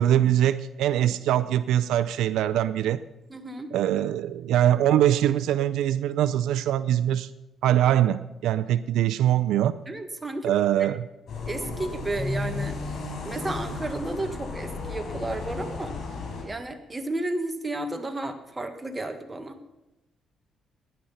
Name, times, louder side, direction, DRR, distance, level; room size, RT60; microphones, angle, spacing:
voice 1, 0.0-3.0 3.7-7.3 7.6-9.8 10.4-11.1, right 11 dB, 85° right, 15 dB, 0.5 m, -23 dB
voice 2, 3.3-3.7 9.9-10.9 11.5-12.8 13.2-16.0 16.4-19.6, right 2 dB, 20° right, 6 dB, 1.8 m, -32 dB
sound 1, 11.3-16.4, left 3 dB, 60° left, 4.6 m, -34 dB
16.0 x 10.5 x 5.7 m, 0.99 s
cardioid pair, 90°, 0 cm